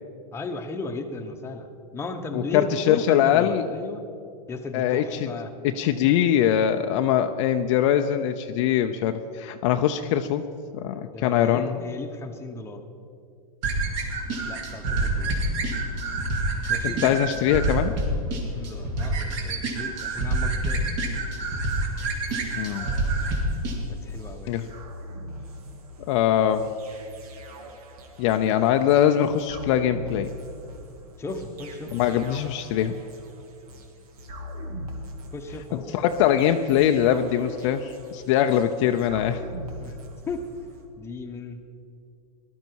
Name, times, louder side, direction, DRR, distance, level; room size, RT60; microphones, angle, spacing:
voice 1, 0.3-1.7 1.9-4.0 4.5-5.5 11.1-12.8 14.5-15.4 16.7-17.2 18.4-20.8 23.9-24.5 31.2-31.9 35.3-36.0 39.8-40.0 40.3-40.4 41.0-41.6, left 3 dB, 15° left, 4 dB, 1.1 m, -35 dB
voice 2, 2.3-3.7 4.7-5.3 5.6-10.4 10.7-11.8 16.8-17.9 22.5-22.9 24.5-24.7 26.1-26.7 28.2-30.3 31.9-33.0 35.7-39.4, left 10 dB, 50° left, 7 dB, 0.6 m, -22 dB
sound 1, 13.6-23.8, right 2 dB, 50° right, 2.8 m, -27 dB
sound 2, 21.7-40.9, equal, 70° right, 2.0 m, -42 dB
18.0 x 12.0 x 4.7 m, 2.4 s
hypercardioid pair, 135°, 20 cm